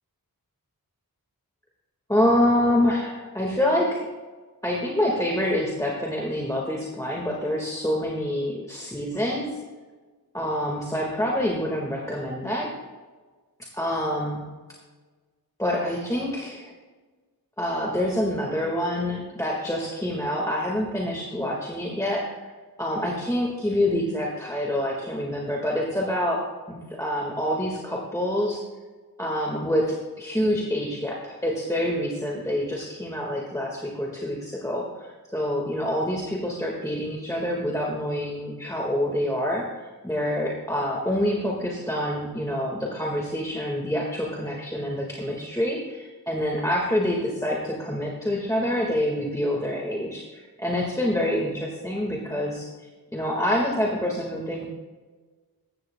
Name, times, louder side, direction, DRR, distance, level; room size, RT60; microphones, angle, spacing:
voice 1, 2.1-4.0 4.6-9.4 10.3-12.7 13.7-14.4 15.6-16.7 17.6-22.5 22.8-28.6 29.2-54.7, left 1 dB, 10° left, -2 dB, 1.8 m, -26 dB
15.0 x 14.0 x 2.3 m, 1.4 s
wide cardioid pair, 75°, 37 cm